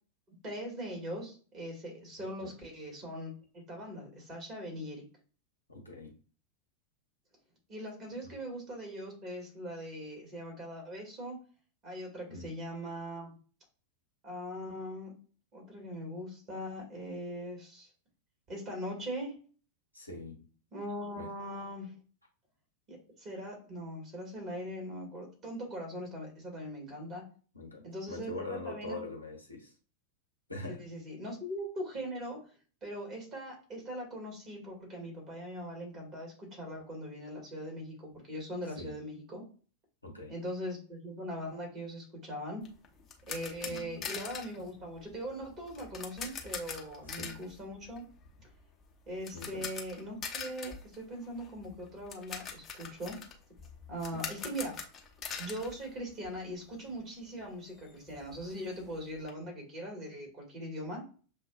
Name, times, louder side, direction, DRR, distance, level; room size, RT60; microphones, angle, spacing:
voice 1, 0.4-5.1 7.7-11.4 11.8-13.4 14.2-15.1 15.5-17.9 18.5-19.4 20.7-21.9 22.9-27.2 27.8-29.1 30.8-32.4 32.8-39.4 40.3-42.7 43.3-48.0 48.4-48.5 49.1-53.2 53.9-54.8 55.4-61.1, equal, 30° right, 1 dB, 1.9 m, -41 dB
voice 2, 5.7-6.1 8.2-8.3 12.3-12.5 19.9-20.4 21.2-21.3 27.5-29.7 30.5-30.8 38.8-39.0 40.0-40.3 43.6-44.1 47.1-47.4 49.3-49.7 54.1-54.2, left 2 dB, 85° left, 1 dB, 1.0 m, -43 dB
sound 1, 42.6-56.6 56.9-57.0 57.4-57.5 57.8-59.3, left 6 dB, 25° left, 0.8 m, -44 dB
6.8 x 2.3 x 2.4 m, 0.39 s
figure-of-eight pair, 90°, 0 cm